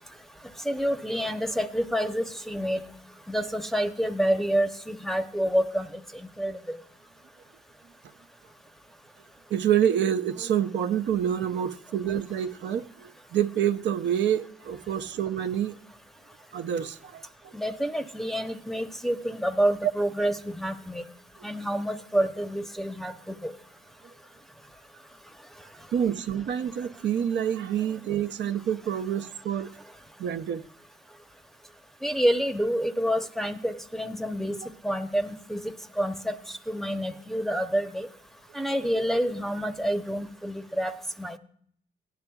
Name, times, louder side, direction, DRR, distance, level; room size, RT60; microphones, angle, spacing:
voice 1, 0.6-2.8 3.3-5.9 6.4-6.8 17.5-21.0 21.4-23.5 32.0-34.6 34.8-36.4 36.7-38.1 38.5-41.4, equal, ahead, 6 dB, 0.8 m, -28 dB
voice 2, 9.5-15.8 16.5-17.5 25.9-29.7 30.2-30.6, right 9 dB, 65° right, 8 dB, 0.7 m, -27 dB
16.5 x 10.0 x 2.3 m, 0.64 s
cardioid pair, 90°, 20 cm